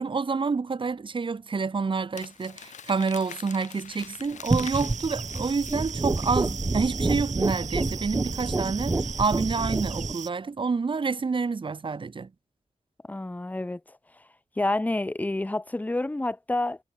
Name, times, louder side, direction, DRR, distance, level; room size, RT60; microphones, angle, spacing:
voice 1, 0.0-12.3, right 4 dB, 45° right, 1.0 m, -28 dB
Crumpling crinkling, 2.1-6.7, left 8 dB, 90° left, 1.5 m, -45 dB
sound 1, 4.4-10.3, right 7 dB, 80° right, 2.1 m, -38 dB
sound 2, 4.5-10.1, right 2 dB, 25° right, 0.8 m, -28 dB
voice 2, 13.0-14.3 14.6-16.8, left 2 dB, 15° left, 0.7 m, -29 dB
cardioid pair, 65°, 12 cm